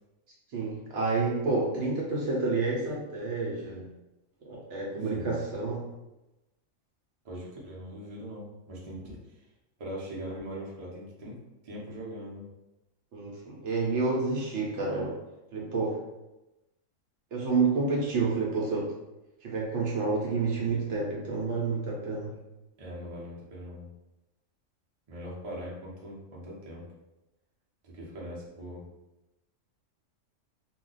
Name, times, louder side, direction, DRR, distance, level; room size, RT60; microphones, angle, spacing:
voice 1, 0.5-3.9 4.4-5.9 13.1-15.2 15.5-16.0 17.3-18.9 19.4-22.3, right 3 dB, 65° right, -3 dB, 0.9 m, -29 dB
voice 2, 5.0-5.4 7.2-9.2 9.8-12.5 22.8-23.9 25.1-26.8 27.8-28.9, equal, 35° right, -5 dB, 0.6 m, -41 dB
2.3 x 2.1 x 3.8 m, 0.98 s
omnidirectional pair, 1.4 m